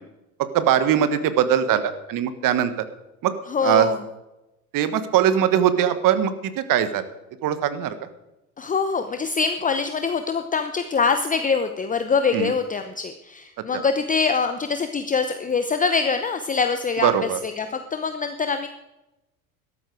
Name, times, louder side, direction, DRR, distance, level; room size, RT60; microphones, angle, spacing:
voice 1, 0.5-2.7 3.2-3.3 3.6-3.9 4.7-7.0 7.4-8.0 12.3-12.5 17.0-17.4, right 10 dB, 50° right, 12 dB, 1.5 m, -21 dB
voice 2, 3.5-4.0 8.6-18.7, left 5 dB, 20° left, 8 dB, 0.8 m, -24 dB
12.5 x 12.5 x 4.8 m, 0.97 s
hypercardioid pair, 75°, 43 cm